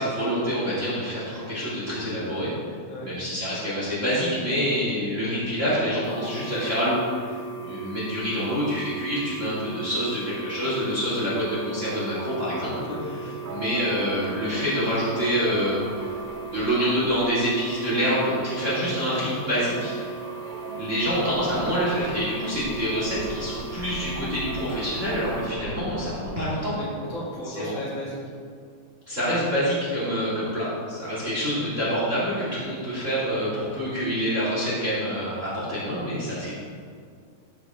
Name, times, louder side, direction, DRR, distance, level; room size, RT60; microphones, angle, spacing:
voice 1, 0.0-2.5 3.0-7.0 7.6-12.7 13.5-15.8 16.5-20.0 20.8-26.7 27.5-27.8 29.1-36.5, equal, 25° right, -8 dB, 2.4 m, -26 dB
sound 1, 6.0-25.5, right 5 dB, 25° left, 3.0 m, -38 dB
voice 2, 12.9-13.4 26.8-28.2 31.5-31.7, left 1 dB, 60° left, -6 dB, 3.4 m, -35 dB
sound 2, 13.4-26.7, right 3 dB, 70° right, 2.1 m, -39 dB
12.0 x 7.8 x 3.7 m, 2.1 s
omnidirectional pair, 4.1 m